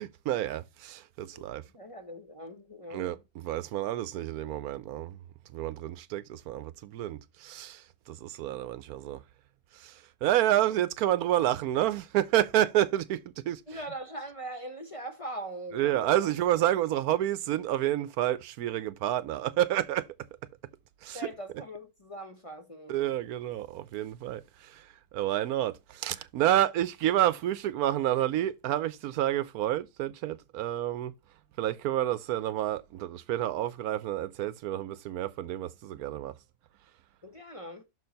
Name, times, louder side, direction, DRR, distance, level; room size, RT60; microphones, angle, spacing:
voice 1, 0.0-1.6 2.9-5.2 5.5-9.2 9.7-13.6 15.7-20.1 21.0-21.3 22.9-31.1 31.6-36.3, right 13 dB, 80° right, 1.1 m, -29 dB
voice 2, 1.7-3.0 13.7-16.3 21.1-23.0 37.2-37.8, right 1 dB, 25° left, 0.9 m, -41 dB
6.4 x 4.4 x 5.2 m
omnidirectional pair, 1.6 m